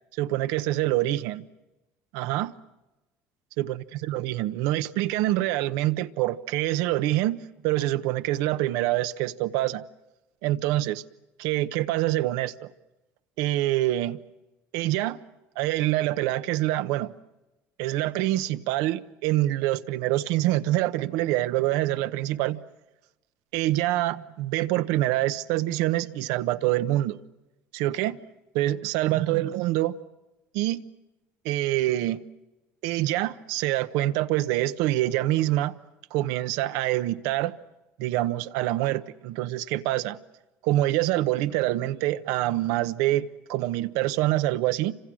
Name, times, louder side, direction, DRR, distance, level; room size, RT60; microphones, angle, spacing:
voice 1, 0.2-1.4 2.1-2.5 3.6-9.8 10.4-11.0 11.4-12.7 13.4-14.2 14.7-15.2 15.6-17.1 17.8-22.6 23.5-27.2 27.7-28.2 28.5-29.9 30.5-30.8 31.4-32.2 32.8-35.7 36.1-37.5 38.0-40.2 40.6-44.9, right 15 dB, 80° right, 0.9 m, -25 dB
30.0 x 26.5 x 6.3 m
supercardioid pair, 105°, 6 cm